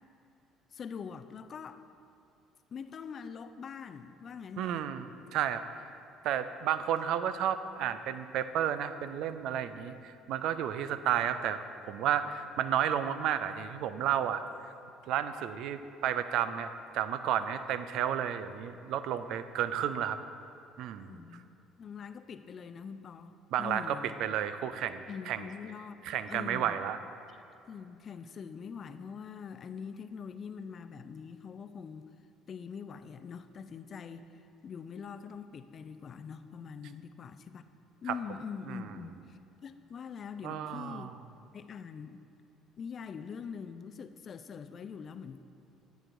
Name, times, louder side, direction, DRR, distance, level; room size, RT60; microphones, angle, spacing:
voice 1, 0.7-1.8 2.7-4.9 21.1-21.5 21.8-24.2 25.1-26.8 27.3-27.4 27.7-32.1 32.5-34.3 34.6-37.7 38.0-41.1 41.5-42.2 42.8-45.4, left 6 dB, 40° left, 11 dB, 0.4 m, -43 dB
voice 2, 4.6-5.1 5.3-5.6 6.2-14.4 15.1-20.2 20.8-21.1 23.5-25.4 26.0-27.0 38.1-38.2 38.7-38.8 40.4-41.1, right 9 dB, 60° right, 11 dB, 0.4 m, -32 dB
14.0 x 8.9 x 2.5 m, 2.7 s
figure-of-eight pair, 55°, 0 cm